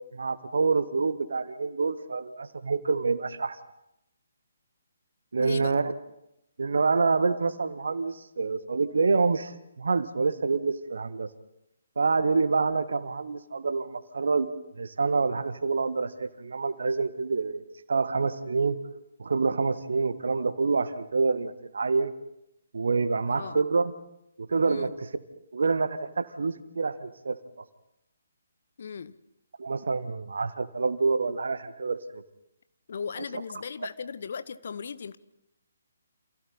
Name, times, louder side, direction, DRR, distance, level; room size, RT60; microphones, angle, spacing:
voice 1, 0.0-3.6 5.3-5.9 6.6-11.3 12.0-14.5 14.8-17.6 17.9-18.8 19.2-22.1 22.7-23.9 24.5-25.1 25.5-27.4 29.6-32.0, right 4 dB, 55° right, 11 dB, 1.6 m, -27 dB
voice 2, 5.4-5.7 23.3-23.6 24.6-24.9 28.8-29.1 32.9-35.2, left 6 dB, 50° left, 14 dB, 1.0 m, -37 dB
29.5 x 28.0 x 4.3 m, 0.84 s
figure-of-eight pair, 135°, 0 cm